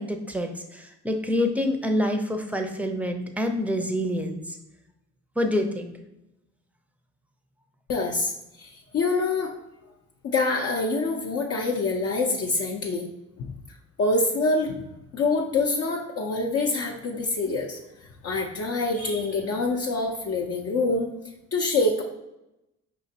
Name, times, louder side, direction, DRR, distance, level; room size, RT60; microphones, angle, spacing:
voice 1, 0.0-4.6 5.4-5.9, left 1 dB, 5° right, 5 dB, 0.5 m, -27 dB
voice 2, 7.9-8.3 8.6-9.6 10.2-13.1 13.4-13.5 14.0-17.8 18.2-21.1 21.5-22.0, left 3 dB, 50° left, 1 dB, 0.5 m, -25 dB
5.1 x 3.1 x 2.8 m, 0.90 s
cardioid pair, 90°, 30 cm